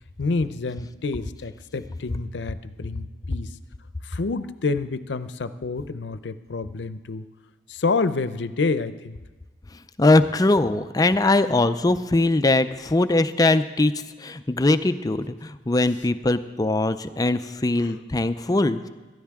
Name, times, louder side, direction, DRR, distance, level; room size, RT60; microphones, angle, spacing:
voice 1, 0.2-3.5 4.0-7.3 7.7-9.2 17.8-18.0, left 3 dB, 85° left, 13 dB, 0.6 m, -28 dB
voice 2, 10.0-13.9 14.2-18.9, left 2 dB, 20° left, 11 dB, 0.4 m, -21 dB
17.5 x 13.5 x 3.6 m, 1.2 s
head